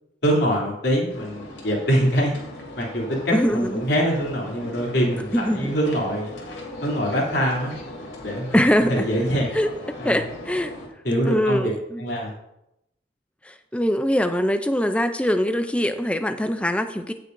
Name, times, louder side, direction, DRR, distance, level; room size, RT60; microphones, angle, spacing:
voice 1, 0.2-2.3 2.8-6.4 6.8-7.7 8.2-8.6 8.9-9.5 10.0-10.2 11.0-11.7 12.0-12.3, equal, 65° left, -3 dB, 3.0 m, -24 dB
sound 1, 1.1-10.9, left 1 dB, 85° left, 3.0 m, -39 dB
voice 2, 3.3-3.9 5.3-5.7 8.5-9.1 9.5-9.7 10.0-10.7 11.2-12.0 13.5-17.1, equal, 5° left, 8 dB, 0.5 m, -22 dB
17.0 x 6.7 x 2.7 m, 0.85 s
head